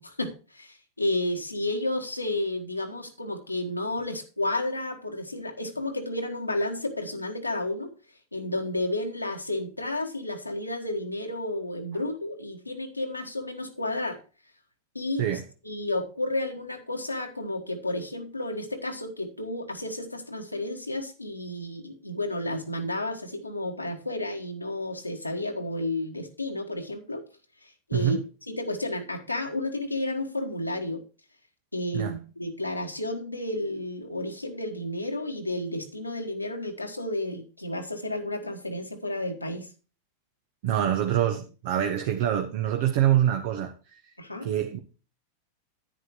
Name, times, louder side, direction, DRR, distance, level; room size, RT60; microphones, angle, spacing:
voice 1, 0.0-7.9 8.3-14.2 14.9-15.3 15.6-27.2 27.6-28.2 28.5-31.0 31.7-39.7 44.2-44.5, left 1 dB, 85° left, 1.4 m, -31 dB
voice 2, 27.9-28.2 31.9-32.2 40.6-44.2 44.4-44.8, right 11 dB, 50° right, 1.1 m, -25 dB
10.5 x 9.5 x 3.1 m
figure-of-eight pair, 90°, 0 cm